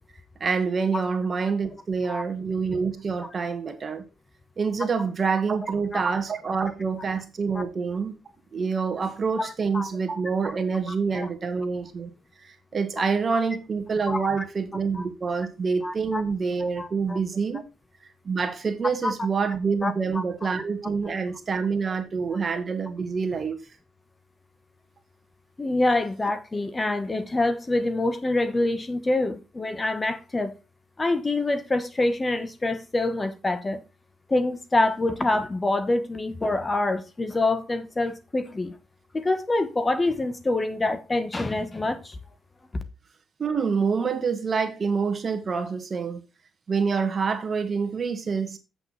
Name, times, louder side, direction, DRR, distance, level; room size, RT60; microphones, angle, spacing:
voice 1, 0.4-4.0 4.6-8.1 8.5-12.1 12.4-17.6 18.2-23.6 43.4-46.2 46.7-48.6, right 5 dB, 40° right, 1.6 m, -27 dB
voice 2, 9.4-9.9 11.1-11.3 14.1-14.2 14.9-15.0 15.8-16.2 16.6-17.2 19.0-19.1 19.8-20.2 21.0-21.2 21.8-22.0 25.6-30.5 31.0-33.8 34.3-38.8 39.1-42.2, left 2 dB, 20° left, 1.1 m, -26 dB
8.0 x 6.9 x 4.1 m
cardioid pair, 90°, 0 cm